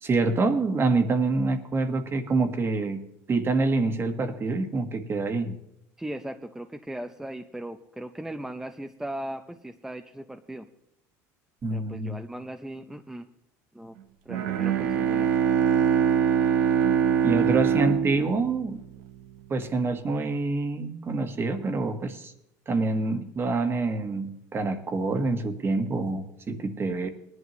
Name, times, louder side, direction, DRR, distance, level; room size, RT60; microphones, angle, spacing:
voice 1, 0.0-3.0 3.3-5.5 11.6-12.1 17.2-18.8 19.5-22.3 22.7-27.1, right 3 dB, 30° right, 8 dB, 1.5 m, -26 dB
voice 2, 6.0-10.7 11.7-13.3 13.7-14.0 14.3-15.3, right 1 dB, 5° right, 6 dB, 0.6 m, -38 dB
Bowed string instrument, 14.3-19.2, right 8 dB, 85° right, 0.9 m, -23 dB
19.0 x 11.0 x 3.1 m, 0.83 s
supercardioid pair, 105°, 8 cm